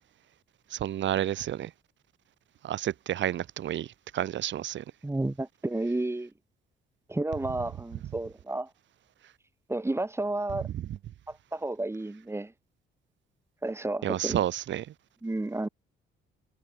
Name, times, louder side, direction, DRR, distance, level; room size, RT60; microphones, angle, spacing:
voice 1, 0.7-1.7 2.6-3.9 4.1-4.8 14.0-14.8, right 11 dB, 70° right, 1.5 m, -30 dB
voice 2, 5.0-6.3 7.1-8.7 9.7-10.7 11.3-12.5 13.6-14.4 15.2-15.7, right 2 dB, 15° right, 3.2 m, -31 dB
cardioid pair, 90°, 20 cm